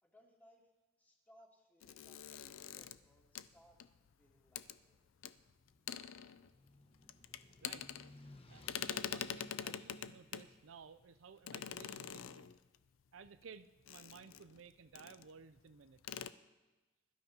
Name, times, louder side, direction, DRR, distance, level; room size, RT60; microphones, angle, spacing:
voice 1, 0.0-0.7 1.0-3.8 4.2-5.1, equal, 10° left, -3 dB, 2.6 m, -67 dB
sound 1, 1.8-4.1 4.6-4.8 5.2-5.3 5.7-6.7 7.0-8.4 8.6-10.5 11.5-12.8 13.9-14.6 14.9-15.3 15.6-15.7 16.0-16.3, left 9 dB, 75° left, 0.4 m, -45 dB
sound 2, 5.4-11.5, left 2 dB, 30° left, 1.0 m, -61 dB
voice 2, 8.5-12.5 13.1-16.2, right 5 dB, 75° right, 12 dB, 0.5 m, -56 dB
22.0 x 12.0 x 2.9 m, 1.2 s
head